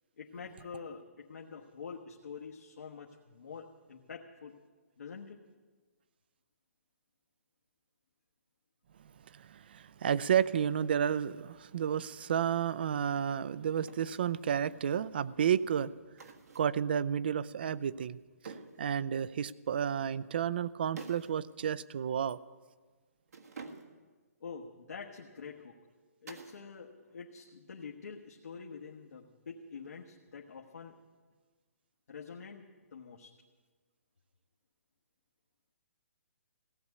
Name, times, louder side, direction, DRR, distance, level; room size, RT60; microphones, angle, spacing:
voice 1, 0.2-4.6 5.0-5.4 24.4-25.7 26.2-31.0 32.1-32.6 32.9-33.3, left 5 dB, 75° left, -1 dB, 1.3 m, -46 dB
voice 2, 9.3-15.9 16.5-18.2 18.4-18.5 18.8-22.4, right 8 dB, 40° right, 19 dB, 0.4 m, -31 dB
sound 1, 12.1-12.3 13.8-14.2 16.2-16.8 18.5-18.9 21.0-21.4 21.7-21.8 23.3-24.1 26.3-26.7 27.0-27.5 29.8-30.3, right 4 dB, 85° right, 1.6 m, -49 dB
16.5 x 8.0 x 9.6 m, 1.4 s
hypercardioid pair, 170°, 8 cm